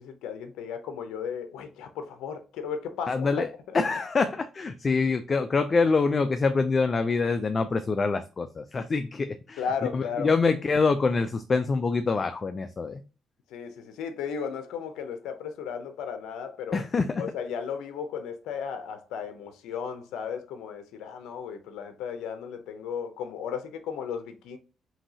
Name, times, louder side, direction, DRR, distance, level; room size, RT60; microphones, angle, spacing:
voice 1, 0.0-3.3 9.6-10.3 13.5-16.8 17.2-24.6, left 7 dB, 90° left, 0.6 m, -35 dB
voice 2, 3.1-3.5 3.7-9.6 9.9-13.0 16.7-17.2, left 4 dB, 35° left, 0.4 m, -25 dB
5.7 x 2.7 x 2.7 m
cardioid pair, 90°, 0 cm